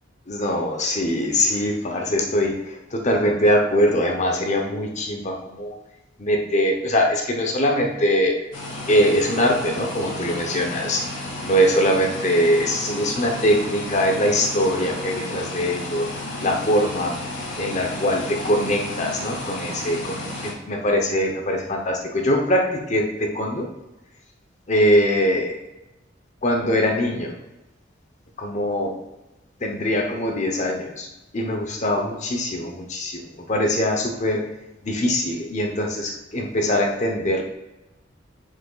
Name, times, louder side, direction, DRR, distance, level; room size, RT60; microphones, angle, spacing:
voice 1, 0.3-5.7 6.2-8.4 8.9-11.0 11.4-16.1 16.4-17.1 17.6-23.7 24.7-25.6 26.4-27.4 28.4-29.0 29.6-31.1 31.3-34.5 34.8-37.4, equal, 40° left, 2 dB, 0.8 m, -22 dB
sound 1, 8.5-20.5, left 1 dB, 75° left, 1.8 m, -32 dB
7.5 x 6.6 x 2.3 m, 0.98 s
head